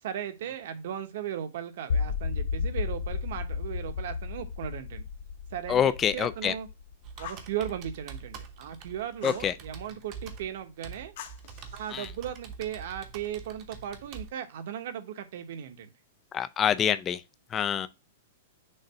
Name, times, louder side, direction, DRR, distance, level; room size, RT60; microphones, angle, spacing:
voice 1, 0.0-5.1 5.5-6.7 7.2-11.1 11.7-15.9, right 9 dB, 55° right, 0.9 m, -37 dB
sound 1, 1.9-8.0, left 5 dB, 70° left, 0.6 m, -33 dB
voice 2, 5.7-6.5 9.2-9.5 11.9-12.1 16.3-17.2 17.5-17.9, left 8 dB, 15° left, 0.3 m, -26 dB
Computer keyboard, 7.0-14.3, right 6 dB, 25° right, 0.8 m, -45 dB
Fire, 7.2-7.5 9.2-9.5 11.2-12.1, left 10 dB, 50° left, 1.0 m, -44 dB
6.5 x 2.6 x 5.5 m
supercardioid pair, 170°, 0 cm